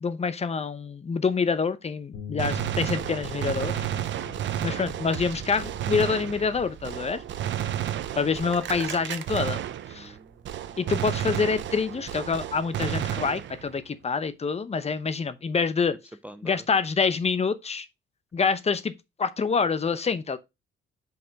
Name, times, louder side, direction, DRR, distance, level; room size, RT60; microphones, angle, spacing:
voice 1, 0.0-3.9 4.6-7.2 8.2-9.6 9.9-10.1 10.8-16.0 16.4-17.9 18.3-18.9 19.2-20.4, left 5 dB, 30° left, 0.8 m, -26 dB
Bass guitar, 2.1-8.4, left 9 dB, 75° left, 2.6 m, -44 dB
Gunshot gunfire, 2.4-10.2 10.4-13.8, right 11 dB, 70° right, 0.7 m, -32 dB
voice 2, 9.9-10.7 16.2-16.6, right 1 dB, 5° right, 0.5 m, -47 dB
5.6 x 4.3 x 5.1 m
cardioid pair, 90°, 20 cm